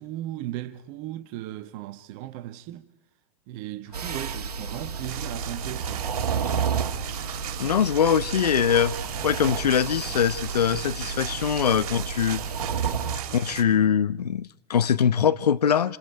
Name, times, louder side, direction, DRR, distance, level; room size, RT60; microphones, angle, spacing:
voice 1, 0.0-2.9 3.5-6.1, right 14 dB, 45° right, 1.3 m, -36 dB
sound 1, 3.8-10.5, left 8 dB, 65° left, 2.1 m, -51 dB
sound 2, 3.9-13.2, right 6 dB, 80° right, 1.8 m, -31 dB
sound 3, 5.0-13.6, right 11 dB, 60° right, 3.3 m, -37 dB
voice 2, 7.6-9.0 9.2-12.4 13.3-16.0, left 8 dB, 85° left, 0.8 m, -22 dB
28.0 x 27.0 x 4.6 m
hypercardioid pair, 105°, 20 cm